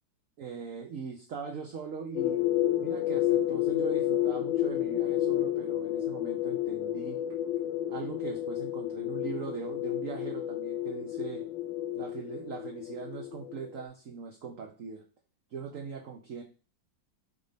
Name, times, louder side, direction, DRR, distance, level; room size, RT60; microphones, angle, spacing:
voice 1, 0.4-2.4 2.8-7.2 7.9-11.4 11.9-15.0 15.5-16.4, right 6 dB, 60° right, 2 dB, 0.9 m, -40 dB
sound 1, 2.2-13.8, left 13 dB, 85° left, 1.4 m, -31 dB
5.2 x 3.9 x 5.0 m, 0.37 s
omnidirectional pair, 2.1 m